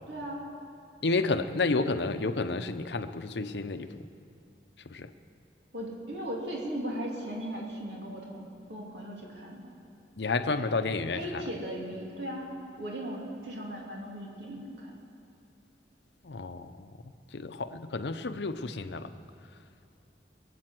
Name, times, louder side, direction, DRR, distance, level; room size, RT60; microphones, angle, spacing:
voice 1, 0.1-0.5 5.7-9.6 11.1-14.9, equal, 70° right, -2 dB, 2.9 m, -37 dB
voice 2, 1.0-3.9 4.9-5.1 10.2-11.4 16.2-16.9 17.3-19.1, left 3 dB, 70° left, 9 dB, 0.7 m, -30 dB
21.5 x 8.6 x 7.8 m, 2.7 s
head